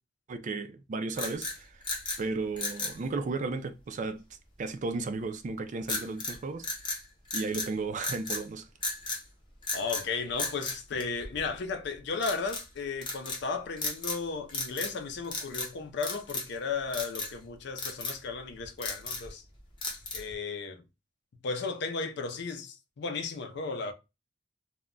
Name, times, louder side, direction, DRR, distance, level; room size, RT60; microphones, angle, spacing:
voice 1, 0.3-1.8 2.2-4.2 4.6-6.7 7.3-8.7, right 3 dB, 40° right, 0.4 m, -34 dB
sound 1, 1.1-2.2 2.6-3.0 5.9-6.4 6.6-7.7 8.0-8.4 8.8-9.2 9.6-10.1 10.4-11.6 12.2-12.7 13.0-13.4 13.8-14.2 14.5-15.0 15.2-15.7 16.0-16.6 16.9-17.3 17.8-18.2 18.6-19.3 19.8-20.3, left 3 dB, 25° left, 0.7 m, -35 dB
voice 2, 9.7-19.4 20.1-20.8 21.4-23.9, left 4 dB, 65° left, 0.5 m, -35 dB
2.2 x 2.1 x 3.6 m
head